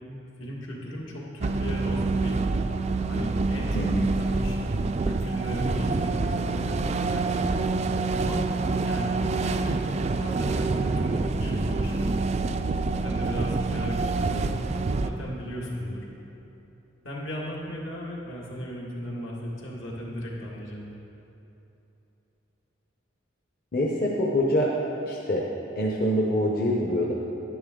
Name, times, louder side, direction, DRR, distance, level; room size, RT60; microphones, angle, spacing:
voice 1, 0.4-2.4 3.1-4.6 5.0-7.5 8.1-8.4 8.8-9.8 10.1-12.1 12.9-16.1 17.0-20.9, equal, 80° left, -4 dB, 1.9 m, -36 dB
sound 1, 1.4-15.1, right 3 dB, 35° right, 0.3 m, -27 dB
voice 2, 3.7-4.1 23.7-24.7 25.1-25.5 25.8-27.1, equal, 50° left, -2 dB, 0.8 m, -25 dB
10.5 x 9.8 x 3.7 m, 3.0 s
head